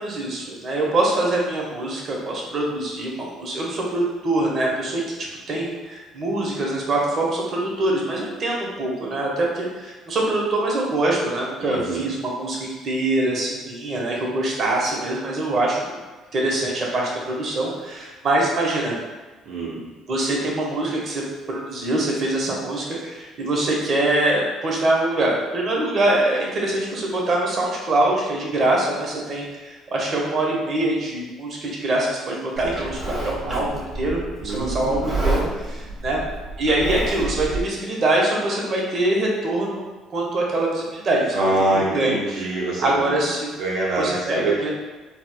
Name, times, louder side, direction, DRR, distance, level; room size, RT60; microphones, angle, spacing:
voice 1, 0.0-5.1 5.5-15.9 16.3-18.9 20.1-21.2 21.5-36.2 36.6-39.8 40.1-41.4 41.7-42.5 42.8-43.5 44.0-44.7, right 2 dB, 45° right, -3 dB, 0.8 m, -24 dB
voice 2, 11.6-12.1 19.5-19.9 34.4-35.2 41.3-43.2 43.6-44.5, right 2 dB, 70° right, -6 dB, 0.5 m, -25 dB
Livestock farm animals working animals, 32.6-37.6, right 2 dB, 15° right, 1.3 m, -29 dB
4.0 x 2.1 x 2.3 m, 1.3 s
supercardioid pair, 80°, 0 cm